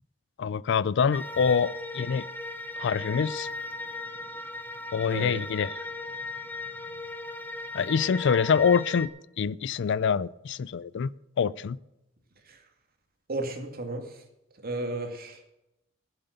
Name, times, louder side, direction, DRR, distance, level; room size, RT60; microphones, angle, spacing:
voice 1, 0.4-2.2 2.8-3.5 4.9-5.7 7.7-9.1 9.4-11.1 11.4-11.8, left 6 dB, 60° left, 0.4 m, -25 dB
sound 1, 1.1-9.1, left 2 dB, 10° left, 1.0 m, -37 dB
voice 2, 5.1-5.4 12.5-12.6 13.3-14.2 14.6-15.4, right 2 dB, 50° right, 2.3 m, -34 dB
14.5 x 8.0 x 6.7 m
head